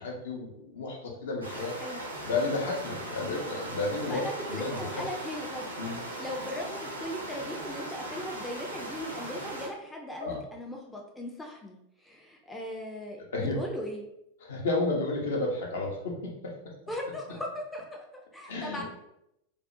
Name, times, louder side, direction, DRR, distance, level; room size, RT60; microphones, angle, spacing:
voice 1, 0.0-1.7 2.2-5.1 5.8-6.0 10.2-10.4 13.3-13.6 14.4-16.8 18.5-18.8, left 3 dB, 60° left, -1 dB, 0.6 m, -32 dB
sound 1, 1.4-9.7, right 1 dB, 85° right, 0.5 m, -39 dB
voice 2, 4.1-5.7 6.2-14.0 16.9-18.8, left 1 dB, 5° left, 0 dB, 0.4 m, -38 dB
2.5 x 2.0 x 2.5 m, 0.83 s
figure-of-eight pair, 90°, 0 cm